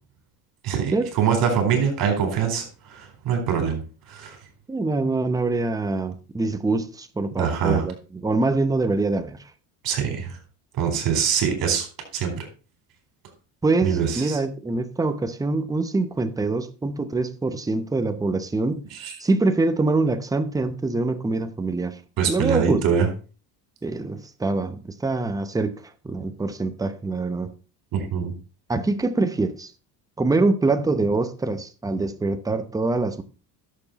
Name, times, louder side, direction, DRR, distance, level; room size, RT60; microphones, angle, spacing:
voice 1, 0.6-3.8 4.1-4.4 7.4-7.8 9.8-10.4 10.8-11.9 12.1-12.5 13.8-14.4 18.9-19.1 22.2-23.1 27.9-28.3, right 7 dB, 55° right, 4.4 m, -24 dB
voice 2, 4.7-9.4 13.6-18.8 19.2-22.0 22.3-22.8 23.8-25.7 26.0-27.5 28.7-29.7 30.2-33.2, right 3 dB, 10° right, 0.8 m, -24 dB
11.0 x 7.1 x 4.1 m
cardioid pair, 135°, 41 cm